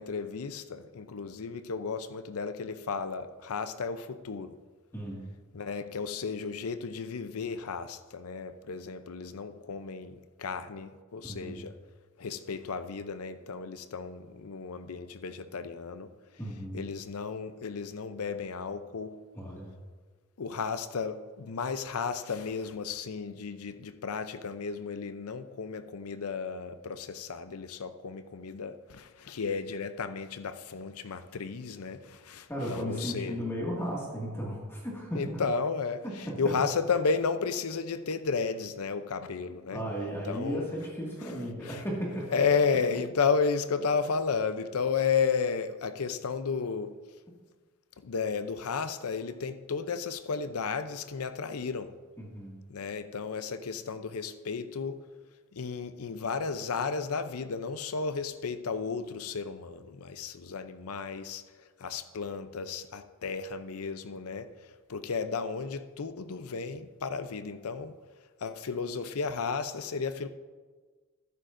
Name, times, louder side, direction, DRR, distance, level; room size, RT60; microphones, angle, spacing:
voice 1, 0.0-4.6 5.5-11.7 12.2-16.1 16.7-19.2 20.4-33.4 35.1-39.8 40.2-40.7 41.6-41.8 42.3-47.0 48.0-51.9 52.7-55.1 55.5-61.4 61.8-64.5 64.9-68.0 68.4-70.3, left 5 dB, 80° left, 0.6 m, -33 dB
voice 2, 11.2-11.6 16.4-16.8 19.3-19.7 32.5-35.4 36.0-36.5 39.7-42.3 52.2-52.6, equal, 10° left, 2.0 m, -35 dB
14.0 x 11.0 x 2.6 m
head